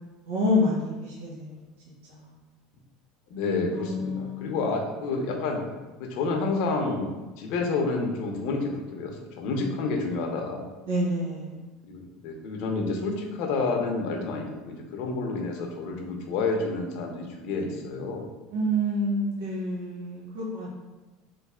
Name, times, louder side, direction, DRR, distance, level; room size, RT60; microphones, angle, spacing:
voice 1, 0.2-1.5 3.7-4.6 10.9-11.6 18.5-20.7, left 1 dB, 85° right, -6 dB, 0.9 m, -27 dB
voice 2, 3.3-5.6 6.0-7.1 7.4-10.6 11.8-18.3, left 3 dB, 65° left, 2 dB, 0.7 m, -29 dB
3.2 x 2.6 x 3.6 m, 1.2 s
supercardioid pair, 120°, 0 cm